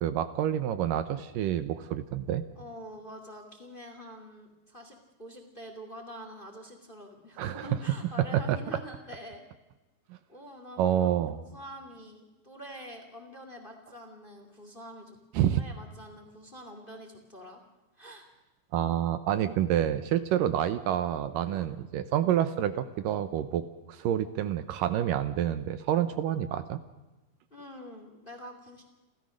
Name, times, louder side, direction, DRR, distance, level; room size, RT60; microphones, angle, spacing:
voice 1, 0.0-2.4 7.4-7.7 8.3-8.6 10.8-11.4 15.3-15.6 18.7-23.6 23.9-26.8, right 10 dB, 75° right, 12 dB, 2.3 m, -28 dB
voice 2, 2.6-9.4 10.3-15.2 15.6-17.6 17.9-18.3 21.5-21.7 27.5-28.8, equal, 15° left, 5 dB, 2.0 m, -46 dB
30.0 x 13.5 x 6.4 m, 1.1 s
omnidirectional pair, 4.2 m